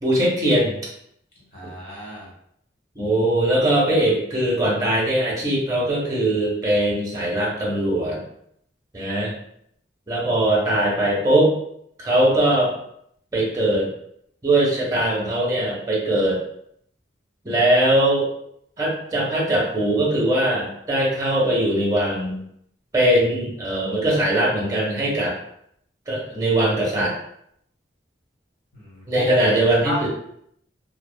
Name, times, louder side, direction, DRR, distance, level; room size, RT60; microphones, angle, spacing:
voice 1, 0.0-0.7 3.0-8.2 8.9-9.3 10.1-11.5 12.0-12.7 13.3-13.9 14.4-16.4 17.4-18.3 18.8-22.4 22.9-25.4 26.1-27.1 29.1-30.1, right 1 dB, 20° right, -4 dB, 0.7 m, -20 dB
voice 2, 1.5-2.3 28.7-29.3 29.8-30.1, equal, 50° left, -6 dB, 1.1 m, -32 dB
2.7 x 2.3 x 2.2 m, 0.71 s
head